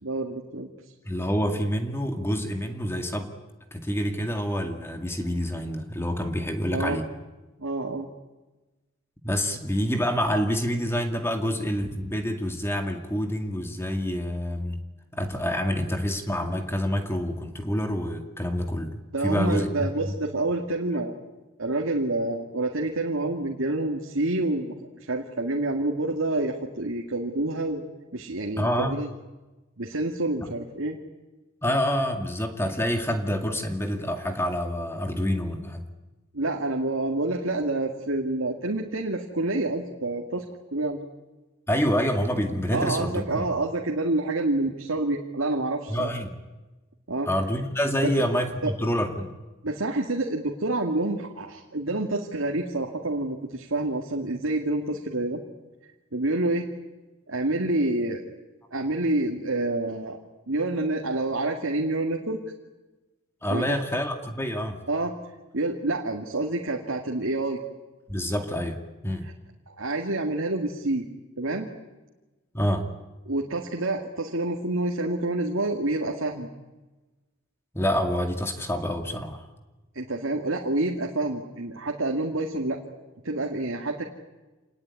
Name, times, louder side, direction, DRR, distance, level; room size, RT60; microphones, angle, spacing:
voice 1, 0.0-0.7 6.7-7.0 7.6-8.1 19.1-21.1 21.6-24.7 25.1-27.8 28.1-29.1 29.8-31.0 36.3-40.5 40.7-41.1 42.7-46.1 47.1-47.3 48.0-48.1 48.6-48.7 49.6-55.4 56.1-56.7 57.3-58.2 58.7-60.2 60.5-62.4 63.5-63.8 64.9-65.1 65.5-67.6 69.7-71.1 71.4-71.7 73.3-76.5 79.9-82.8 83.2-84.0, right 2 dB, 85° right, 1 dB, 2.2 m, -28 dB
voice 2, 1.0-3.3 3.7-7.1 9.2-14.8 15.1-19.9 28.6-29.0 30.4-30.5 31.6-35.9 41.7-43.5 45.9-46.3 47.3-49.3 63.4-64.8 68.1-68.8 69.0-69.3 72.5-72.9 77.7-79.4, equal, 10° left, 5 dB, 2.2 m, -27 dB
27.5 x 19.5 x 9.7 m, 1.1 s
head